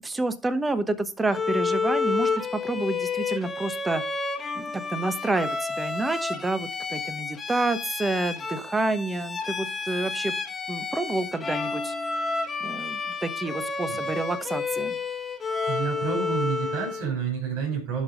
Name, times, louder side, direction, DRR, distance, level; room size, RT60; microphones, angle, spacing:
voice 1, 0.0-4.0 4.5-10.4 10.7-12.3 12.6-15.0, right 2 dB, 10° right, 12 dB, 1.1 m, -29 dB
Bowed string instrument, 1.3-17.1, left 4 dB, 20° left, 1.5 m, -30 dB
voice 2, 15.7-18.0, right 6 dB, 65° right, -1 dB, 5.7 m, -29 dB
11.5 x 4.7 x 5.0 m, 0.35 s
supercardioid pair, 130°, 0 cm